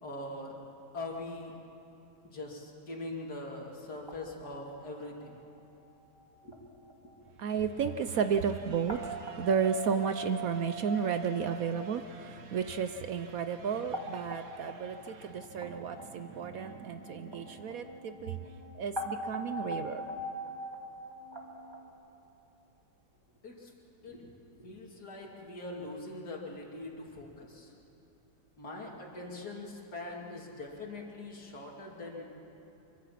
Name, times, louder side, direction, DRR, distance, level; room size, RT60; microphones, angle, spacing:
voice 1, 0.0-0.6 0.9-1.5 2.2-5.4 6.4-6.6 7.0-7.1 23.4-23.7 24.0-24.3 24.6-27.7 28.6-32.3, left 2 dB, 65° left, -1 dB, 3.2 m, -42 dB
sound 1, 4.1-4.2 4.5-5.6 6.2-6.3 6.5-6.6 6.8-7.0 7.3-7.4 7.6-7.9 8.3-13.2 13.7-21.9, right 1 dB, 15° right, 2.2 m, -42 dB
voice 2, 7.4-18.4 18.7-20.0, right 6 dB, 65° right, 9 dB, 1.0 m, -33 dB
24.5 x 24.0 x 5.8 m, 2.9 s
omnidirectional pair, 1.8 m